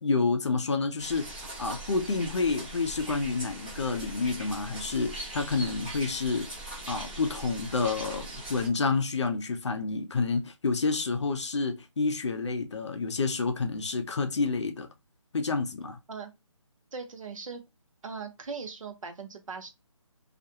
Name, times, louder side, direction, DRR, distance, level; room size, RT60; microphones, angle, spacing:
voice 1, 0.0-6.5 6.9-14.9 15.3-16.0, left 4 dB, 55° left, 0.5 m, -29 dB
sound 1, 1.0-8.7, right 2 dB, 15° right, 0.7 m, -41 dB
voice 2, 16.9-17.6 18.0-19.7, right 5 dB, 75° right, 0.8 m, -39 dB
2.4 x 2.1 x 2.8 m
hypercardioid pair, 170°, 17 cm